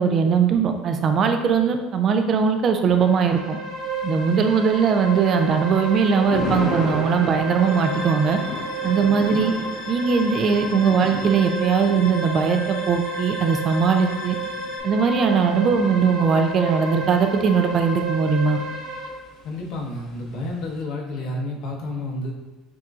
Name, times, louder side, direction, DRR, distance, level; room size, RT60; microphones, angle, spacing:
voice 1, 0.0-3.6 4.0-8.4 8.8-9.5 9.9-14.4 14.8-18.6, right 6 dB, 35° right, 6 dB, 0.3 m, -20 dB
sound 1, 2.7-19.1, right 2 dB, 60° right, 0.8 m, -31 dB
Thunder, 3.7-20.8, left 2 dB, 40° left, 1.1 m, -36 dB
sound 2, 7.6-14.8, left 7 dB, 90° left, 0.5 m, -41 dB
voice 2, 19.4-22.3, left 2 dB, 60° left, -1 dB, 0.9 m, -30 dB
7.2 x 2.6 x 2.4 m, 1.1 s
cardioid pair, 150°, 0 cm